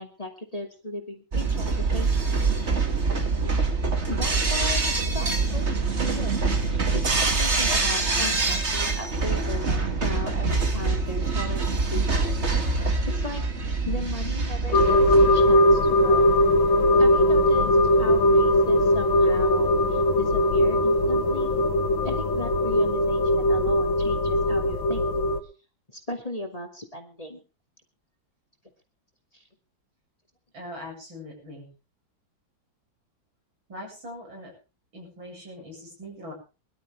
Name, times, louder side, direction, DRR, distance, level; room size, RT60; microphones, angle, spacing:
voice 1, 0.0-1.7 1.9-2.3 4.1-4.8 5.1-12.5 12.8-13.4 13.9-16.4 17.0-21.5 22.0-25.1 25.9-27.4 29.3-29.4, left 2 dB, 20° left, 4 dB, 2.5 m, -36 dB
sound 1, 1.3-15.4, right 4 dB, 35° right, 2.4 m, -25 dB
sound 2, 14.7-25.4, left 1 dB, 80° left, 2.2 m, -20 dB
voice 2, 30.5-31.7 33.7-34.5 34.9-36.3, left 1 dB, 85° right, 0 dB, 8.7 m, -41 dB
23.0 x 12.5 x 3.4 m, 0.33 s
omnidirectional pair, 2.1 m